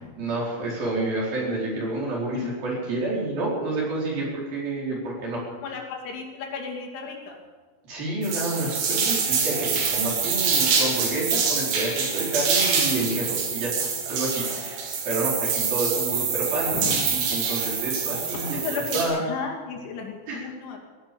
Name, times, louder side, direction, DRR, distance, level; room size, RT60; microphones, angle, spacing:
voice 1, 0.2-5.4 7.8-18.6 18.9-19.2 20.3-20.4, right 2 dB, 55° right, -4 dB, 6.3 m, -29 dB
voice 2, 5.6-7.4 16.7-17.0 17.8-17.9 18.5-20.8, left 5 dB, 85° left, 1 dB, 4.9 m, -33 dB
sound 1, 8.2-19.0, right 5 dB, 80° right, 5.1 m, -25 dB
16.5 x 12.5 x 7.0 m, 1.5 s
omnidirectional pair, 5.3 m